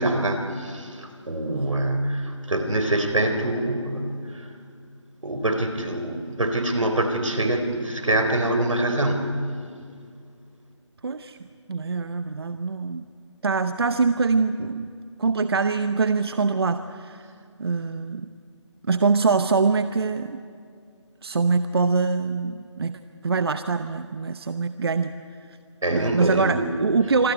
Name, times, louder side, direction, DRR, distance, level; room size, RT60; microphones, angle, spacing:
voice 1, 0.0-4.5 5.2-9.4 25.8-26.7, right 1 dB, 85° right, 6 dB, 4.0 m, -25 dB
voice 2, 1.5-1.8 11.0-11.4 11.7-13.1 13.4-14.8 15.2-17.3 17.6-18.3 18.9-20.4 21.2-25.1 25.9-27.3, right 4 dB, 50° right, 11 dB, 0.8 m, -24 dB
25.5 x 14.0 x 9.8 m, 2.3 s
figure-of-eight pair, 165°, 16 cm